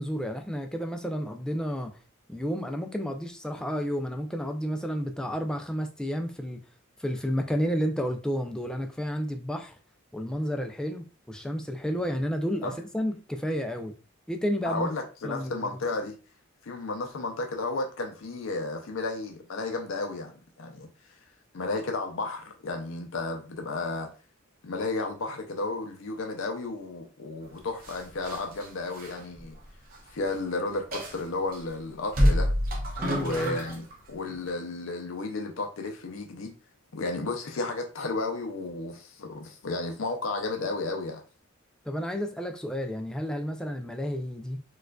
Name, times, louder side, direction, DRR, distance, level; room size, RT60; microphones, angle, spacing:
voice 1, 0.0-2.0 2.3-6.6 7.0-9.8 10.1-13.9 14.3-14.9 15.2-15.7 33.0-33.7 41.9-44.6, equal, 5° left, 0.3 m, -31 dB
voice 2, 14.6-16.2 16.6-20.9 21.5-24.1 24.6-29.6 30.1-32.5 33.2-36.5 36.9-41.2, left 3 dB, 75° left, 0.5 m, -33 dB
sound 1, 27.8-30.1 30.3-30.4 30.9-31.6 32.1-33.9 34.3-34.5, equal, 45° right, 0.8 m, -28 dB
4.4 x 2.4 x 2.2 m
head